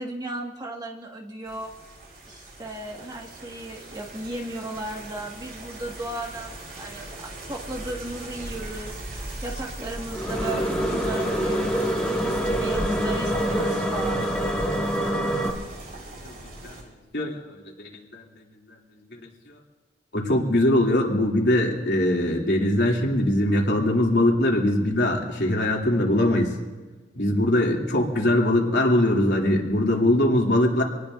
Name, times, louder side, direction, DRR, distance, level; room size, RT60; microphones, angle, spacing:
voice 1, 0.0-1.7 2.3-9.0 9.4-14.3, right 2 dB, 25° right, 0 dB, 2.0 m, -35 dB
sound 1, 1.4-16.8, right 1 dB, 60° right, 6.5 m, -38 dB
sound 2, 10.1-15.5, equal, 5° left, 2.3 m, -25 dB
voice 2, 16.2-16.7 17.1-18.2 19.1-19.6 20.1-26.5 27.1-30.8, left 1 dB, 80° left, -2 dB, 3.0 m, -22 dB
26.5 x 19.0 x 2.7 m, 1.3 s
head